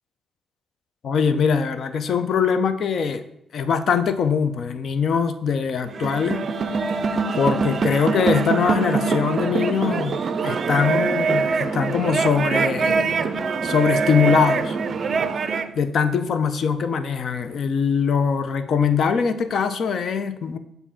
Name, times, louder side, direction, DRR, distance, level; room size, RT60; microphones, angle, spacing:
voice 1, 1.0-3.2 3.5-6.4 7.3-13.1 13.6-14.8 15.7-20.6, left 6 dB, 60° left, 11 dB, 0.6 m, -22 dB
sound 1, 5.9-15.7, right 4 dB, 45° right, 0.4 m, -23 dB
7.1 x 2.7 x 5.6 m, 0.79 s
cardioid pair, 90°, 0 cm